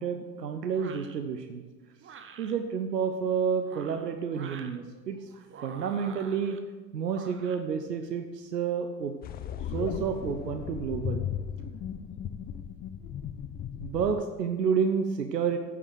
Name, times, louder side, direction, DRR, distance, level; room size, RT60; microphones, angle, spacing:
voice 1, 0.0-1.6 2.4-6.6 6.9-9.1 9.7-11.2 13.8-15.6, right 6 dB, 85° right, 7 dB, 0.8 m, -30 dB
sound 1, 0.7-1.2 2.0-2.5 3.5-4.8 5.5-6.6 7.1-7.6, right 6 dB, 25° right, 1.0 m, -47 dB
sound 2, 9.2-14.2, left 9 dB, 20° left, 0.4 m, -36 dB
8.7 x 8.5 x 6.4 m, 1.3 s
hypercardioid pair, 80°, 47 cm